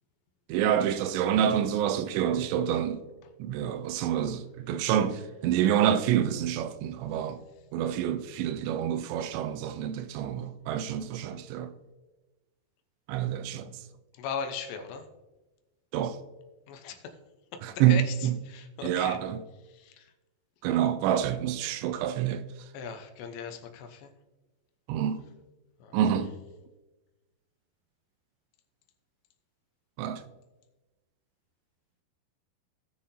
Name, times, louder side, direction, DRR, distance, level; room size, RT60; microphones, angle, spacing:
voice 1, 0.5-3.0 3.4-7.4 7.7-11.7 13.1-13.7 15.9-16.2 17.6-18.3 18.8-19.4 20.6-22.4 24.9-25.2 25.9-26.3 30.0-30.2, right 10 dB, 85° right, 2.9 m, -27 dB
voice 2, 14.2-15.1 16.7-17.0 17.9-19.2 19.7-20.1 22.7-24.1 25.8-26.0, left 6 dB, 75° left, 3.1 m, -38 dB
18.5 x 6.3 x 2.8 m
omnidirectional pair, 5.2 m